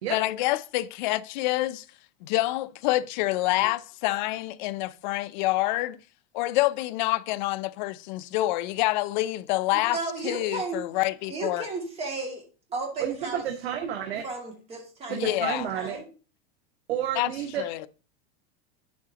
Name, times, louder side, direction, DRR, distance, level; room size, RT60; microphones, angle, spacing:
voice 1, 0.1-1.8 2.3-6.0 6.3-10.0 10.2-11.7 15.1-15.7 17.2-17.3 17.6-17.9, left 17 dB, 50° left, 0.6 m, -27 dB
voice 2, 9.7-10.8 11.3-12.4 12.7-13.4 14.2-16.0, right 3 dB, 20° right, 2.4 m, -34 dB
voice 3, 13.0-14.2 15.1-16.0 16.9-17.6, right 10 dB, 90° right, 1.5 m, -30 dB
9.5 x 7.3 x 2.9 m
supercardioid pair, 165°, 31 cm